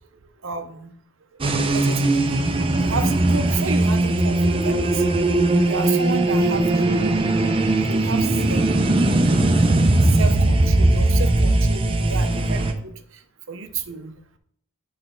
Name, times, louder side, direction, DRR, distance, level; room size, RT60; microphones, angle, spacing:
voice 1, 0.4-0.9 1.7-2.3 2.8-5.0 5.7-7.0 7.9-9.0 10.2-12.9 13.5-14.1, right 5 dB, 65° right, 8 dB, 0.7 m, -31 dB
sound 1, 1.4-12.7, right 2 dB, 25° right, 0.5 m, -19 dB
9.0 x 3.4 x 4.4 m, 0.64 s
head